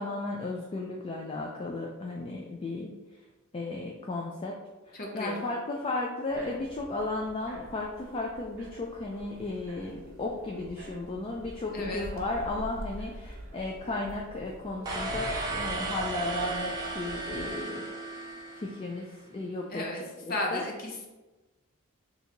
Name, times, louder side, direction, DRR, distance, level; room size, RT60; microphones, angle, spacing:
voice 1, 0.0-3.0 3.5-4.6 4.9-17.9 18.6-19.9 20.2-20.6, left 2 dB, 25° left, -1 dB, 0.3 m, -34 dB
voice 2, 4.9-5.4 11.7-12.1 19.7-20.0 20.3-21.1, left 1 dB, 45° left, 0 dB, 0.7 m, -34 dB
sound 1, 6.3-17.5, right 1 dB, 65° right, 0.7 m, -46 dB
sound 2, 14.8-19.0, right 2 dB, 20° right, 0.6 m, -35 dB
2.8 x 2.6 x 4.3 m, 1.1 s
head